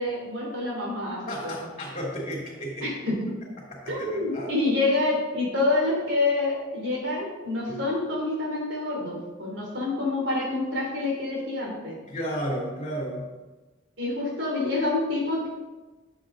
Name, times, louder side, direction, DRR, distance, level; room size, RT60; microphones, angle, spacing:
voice 1, 0.0-1.5 2.8-3.2 3.9-12.0 14.0-15.5, left 2 dB, 90° right, -2 dB, 3.5 m, -27 dB
voice 2, 1.3-2.9 3.7-4.5 7.7-7.8 12.1-13.3, equal, 40° left, -6 dB, 2.9 m, -33 dB
10.0 x 7.2 x 3.9 m, 1.2 s
head